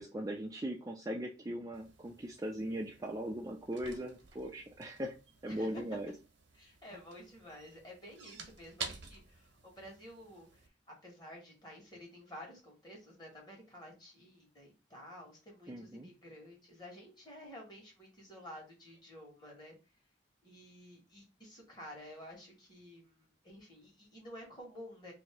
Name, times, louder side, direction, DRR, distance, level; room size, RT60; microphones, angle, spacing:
voice 1, 0.0-5.2 5.4-6.1 15.7-16.1, equal, 20° right, 1 dB, 0.4 m, -39 dB
sound 1, 1.7-10.7, right 5 dB, 85° right, 0.9 m, -51 dB
voice 2, 5.5-5.8 6.5-19.7 20.4-25.1, left 1 dB, 25° left, -1 dB, 1.6 m, -52 dB
3.0 x 2.7 x 4.4 m, 0.29 s
head